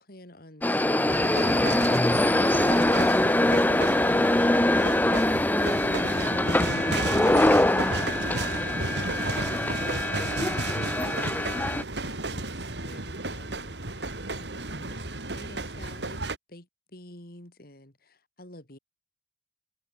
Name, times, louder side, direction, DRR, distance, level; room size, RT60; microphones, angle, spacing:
voice 1, 0.0-10.1 10.5-16.2 16.5-18.8, left 1 dB, 60° left, 5.2 m, -50 dB
sound 1, 0.6-11.8, left 1 dB, 10° left, 0.7 m, -23 dB
sound 2, 1.1-16.4, right 2 dB, 80° right, 4.2 m, -33 dB
head